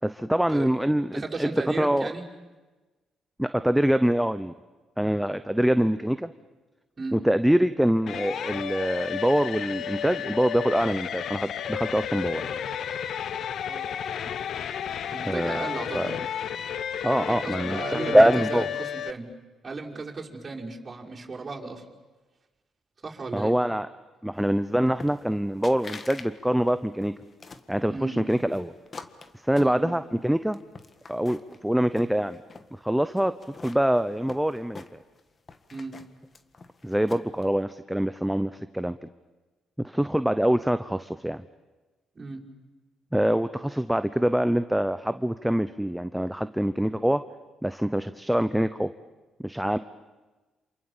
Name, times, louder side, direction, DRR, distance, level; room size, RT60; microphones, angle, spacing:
voice 1, 0.0-1.5 1.8-2.1 3.4-4.5 5.0-6.3 7.1-12.6 15.2-15.7 15.9-16.1 17.0-18.7 23.3-23.9 24.2-27.1 27.7-28.7 29.4-30.6 31.1-32.4 32.7-35.0 36.8-39.1 39.8-41.4 43.1-47.2 47.6-48.9 49.4-49.8, equal, 5° right, 11 dB, 0.8 m, -24 dB
voice 2, 1.1-2.2 7.0-7.2 13.6-13.9 15.1-16.1 17.1-19.3 19.6-21.8 23.0-23.6 27.9-28.2 29.5-29.8 35.7-36.0 42.1-42.4, right 3 dB, 30° right, -3 dB, 5.7 m, -35 dB
sound 1, 8.1-19.1, left 8 dB, 65° left, 1.0 m, -32 dB
sound 2, 25.0-25.4 25.6-26.3 26.6-27.7 28.3-30.2 30.5-31.6 31.9-32.7 33.2-35.2 35.5-37.4, left 4 dB, 35° left, 1.7 m, -44 dB
28.0 x 27.5 x 7.4 m, 1.2 s
cardioid pair, 90°, 0 cm